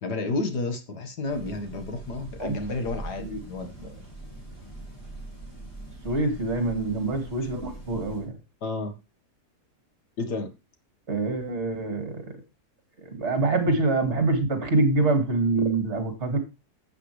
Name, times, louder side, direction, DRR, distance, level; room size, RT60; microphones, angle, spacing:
voice 1, 0.0-4.0 7.4-7.5 8.6-9.0 10.2-10.5, left 2 dB, 85° left, 6 dB, 2.2 m, -31 dB
sound 1, 1.3-8.3, right 2 dB, 15° left, 6.7 m, -42 dB
voice 2, 6.0-8.3 11.1-12.4 13.0-16.4, right 2 dB, 45° right, 6 dB, 2.7 m, -25 dB
12.0 x 7.7 x 3.3 m, 0.26 s
omnidirectional pair, 1.7 m